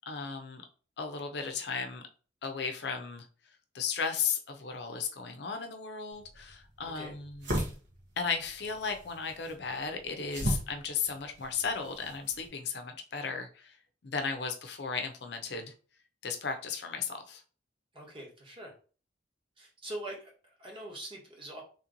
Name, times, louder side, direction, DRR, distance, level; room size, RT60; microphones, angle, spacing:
voice 1, 0.1-0.6 1.0-2.0 2.4-3.2 3.7-7.6 8.2-13.7 14.0-15.7 16.2-17.4, left 5 dB, 65° left, 5 dB, 0.7 m, -35 dB
sound 1, 6.1-12.5, equal, 85° right, 1.3 m, -38 dB
voice 2, 17.9-18.7 19.6-21.6, right 1 dB, 30° right, -1 dB, 1.3 m, -43 dB
3.1 x 3.0 x 3.9 m, 0.38 s
head